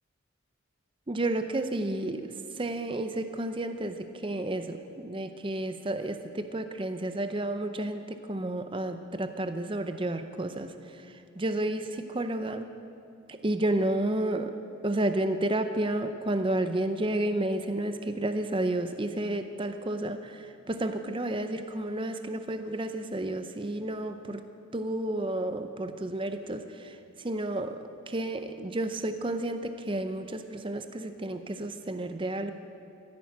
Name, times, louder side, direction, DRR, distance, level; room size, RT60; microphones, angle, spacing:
voice 1, 1.1-8.0 8.3-12.7 13.3-14.5 14.8-24.4 24.7-32.5, right 1 dB, 25° right, 8 dB, 0.6 m, -31 dB
15.0 x 10.5 x 8.5 m, 2.6 s
head